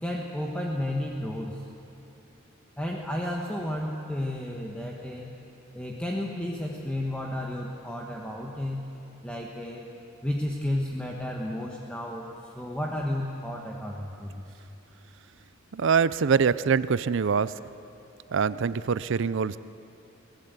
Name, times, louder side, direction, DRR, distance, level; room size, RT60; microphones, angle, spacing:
voice 1, 0.0-1.6 2.8-5.3 5.7-8.8 9.2-9.9 10.2-12.3 12.5-14.4, left 1 dB, 5° left, -1 dB, 1.3 m, -32 dB
voice 2, 15.7-17.6 18.3-19.6, right 6 dB, 60° right, 16 dB, 0.5 m, -24 dB
23.0 x 17.5 x 8.2 m, 2.8 s
head